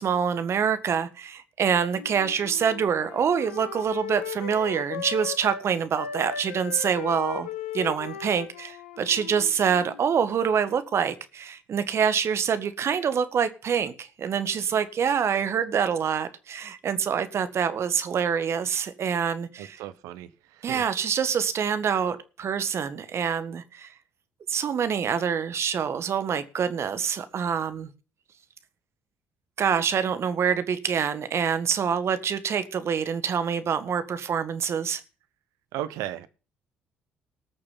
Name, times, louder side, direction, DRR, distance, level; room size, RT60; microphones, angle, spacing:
voice 1, 0.0-7.5 7.7-19.8 20.6-23.9 24.5-27.9 29.6-35.0, right 7 dB, 50° right, 1.7 m, -26 dB
Wind instrument woodwind instrument, 1.9-5.7 5.9-10.1, left 8 dB, 85° left, 1.1 m, -37 dB
voice 2, 19.6-20.3 20.7-20.8 35.7-36.3, right 12 dB, 70° right, 1.0 m, -34 dB
19.5 x 6.7 x 5.8 m
hypercardioid pair, 50°, 6 cm